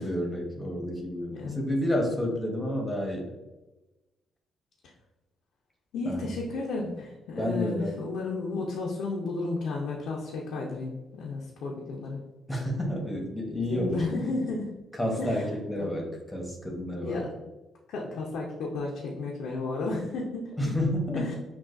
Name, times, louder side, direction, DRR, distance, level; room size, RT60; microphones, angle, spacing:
voice 1, 0.0-3.3 6.0-6.3 7.4-7.9 12.5-14.0 15.0-17.3 20.6-21.3, left 1 dB, 10° left, 0 dB, 1.0 m, -30 dB
voice 2, 1.3-1.7 5.9-12.2 13.7-14.7 15.2-15.5 15.8-16.0 17.0-17.3 17.9-20.7 21.1-21.3, left 3 dB, 80° left, -2 dB, 0.7 m, -33 dB
6.1 x 2.4 x 2.5 m, 1.1 s
cardioid pair, 90°, 0 cm